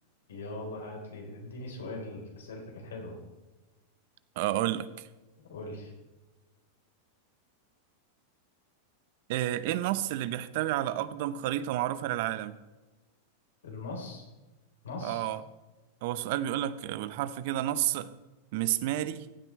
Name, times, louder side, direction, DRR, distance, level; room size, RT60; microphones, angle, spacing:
voice 1, 0.3-3.2 5.5-5.9 13.6-14.2 14.8-15.3, left 2 dB, 85° left, 1 dB, 3.8 m, -40 dB
voice 2, 4.4-5.1 9.3-12.6 15.0-15.4 16.0-18.1 18.5-19.3, right 13 dB, 60° right, 15 dB, 0.7 m, -30 dB
15.0 x 8.9 x 3.2 m, 1.2 s
hypercardioid pair, 110°, 0 cm